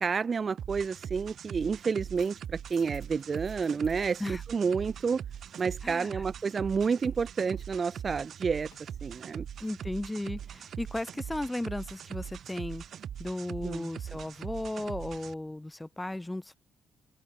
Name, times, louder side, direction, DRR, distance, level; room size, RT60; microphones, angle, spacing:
voice 1, 0.0-5.2 5.6-8.7 9.0-9.5 13.6-13.9, right 5 dB, 40° right, 0.3 m, -30 dB
sound 1, 0.6-15.3, right 9 dB, 60° right, 0.9 m, -41 dB
sound 2, 1.8-4.5 4.7-10.3 13.4-15.6, left 12 dB, 80° left, 4.4 m, -65 dB
voice 2, 5.8-6.2 9.6-12.8 13.2-16.6, left 1 dB, 10° left, 1.0 m, -35 dB
cardioid pair, 90°, 0 cm